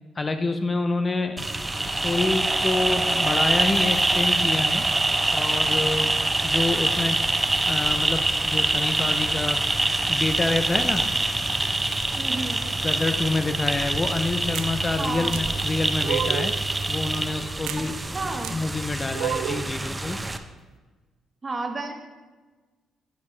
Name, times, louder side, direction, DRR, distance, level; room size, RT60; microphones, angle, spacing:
voice 1, 0.2-1.5 1.9-4.9 5.3-6.2 6.4-7.3 7.7-11.1 12.8-16.6 16.9-17.9 18.5-20.2, left 3 dB, 25° left, 8 dB, 0.5 m, -27 dB
sound 1, 1.4-20.4, right 2 dB, 15° right, 0.6 m, -25 dB
voice 2, 12.2-12.6 15.0-15.4 18.0-18.6 21.4-21.9, right 3 dB, 30° right, 3 dB, 1.3 m, -31 dB
sound 2, 14.5-14.7 15.3-15.4 16.0-16.6 17.7-17.8 18.4-18.6 19.1-19.7, right 10 dB, 85° right, 0.4 m, -29 dB
10.0 x 8.5 x 3.3 m, 1.3 s
cardioid pair, 90°, 0 cm